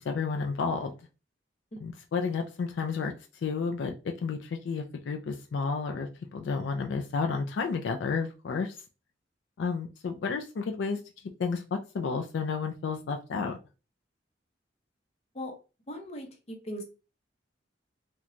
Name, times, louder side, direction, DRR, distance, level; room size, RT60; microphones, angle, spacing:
voice 1, 0.1-0.9 1.8-3.1 3.4-8.8 9.6-11.0 11.4-13.6, left 5 dB, 80° left, 0.4 m, -31 dB
voice 2, 15.9-16.8, equal, 35° left, 0.7 m, -39 dB
2.9 x 2.2 x 2.5 m
head